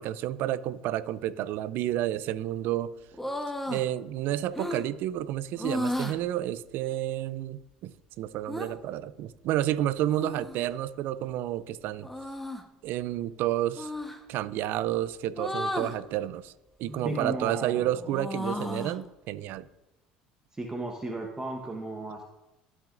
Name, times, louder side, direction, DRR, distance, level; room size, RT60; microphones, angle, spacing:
voice 1, 0.0-2.9 3.7-7.9 8.2-12.1 12.8-13.9 14.3-16.5 16.8-19.7, right 13 dB, 65° right, 0.5 m, -30 dB
sound 1, 3.1-3.9 4.5-4.9 5.6-6.2 8.5-8.7 10.1-10.7 12.0-12.6 13.8-14.2 15.4-16.0 16.8-17.3 17.7-19.0, left 1 dB, 5° left, 1.2 m, -34 dB
voice 2, 17.0-17.9 20.5-22.2, right 2 dB, 20° right, 1.2 m, -35 dB
16.5 x 6.0 x 2.6 m
hypercardioid pair, 70°, 4 cm